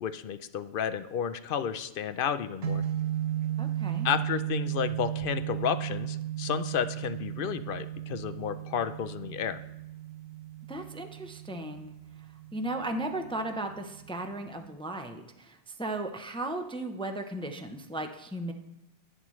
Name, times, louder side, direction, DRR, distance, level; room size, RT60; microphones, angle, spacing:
voice 1, 0.0-2.8 4.0-9.6, left 8 dB, 60° left, 11 dB, 0.7 m, -32 dB
sound 1, 2.6-14.7, right 12 dB, 75° right, 1.1 m, -35 dB
voice 2, 3.6-4.1 10.7-11.9 12.5-18.5, right 1 dB, 5° left, 5 dB, 0.5 m, -36 dB
11.0 x 9.9 x 3.1 m, 0.91 s
omnidirectional pair, 1.1 m